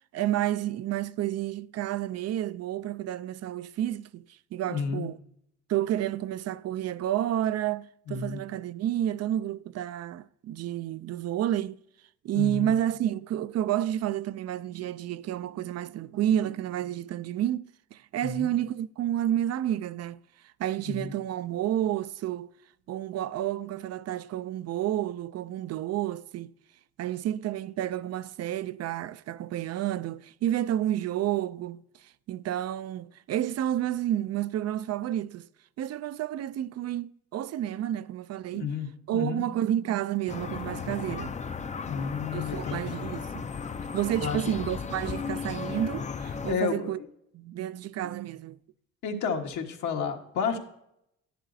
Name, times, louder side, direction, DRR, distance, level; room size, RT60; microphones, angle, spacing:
voice 1, 0.1-4.2 4.5-5.2 5.7-11.8 12.2-20.2 20.6-22.5 22.9-26.5 27.0-31.8 32.3-35.5 35.8-38.7 39.1-41.4 42.3-43.5 43.9-47.0 47.3-48.6, right 12 dB, 55° right, 0.4 m, -30 dB
voice 2, 4.7-5.1 8.1-8.4 12.3-12.7 18.2-18.5 20.9-21.1 38.5-39.4 41.8-43.0 44.2-44.6 46.5-46.9 49.0-50.6, left 6 dB, 75° left, 1.4 m, -31 dB
sound 1, 40.3-46.6, left 5 dB, 25° left, 0.4 m, -35 dB
11.0 x 10.5 x 2.7 m
cardioid pair, 90°, 30 cm